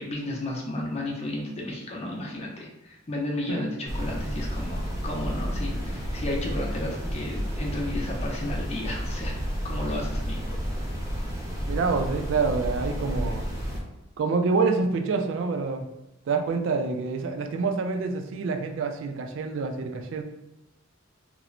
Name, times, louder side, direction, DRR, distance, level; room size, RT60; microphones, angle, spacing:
voice 1, 0.0-9.4 9.6-10.6, left 1 dB, 30° left, -2 dB, 0.5 m, -33 dB
sound 1, 3.9-13.8, equal, 15° right, 0.5 m, -31 dB
voice 2, 11.6-13.4 14.2-15.9 16.3-20.2, right 4 dB, 65° right, 6 dB, 0.3 m, -27 dB
3.0 x 2.0 x 2.4 m, 0.95 s
head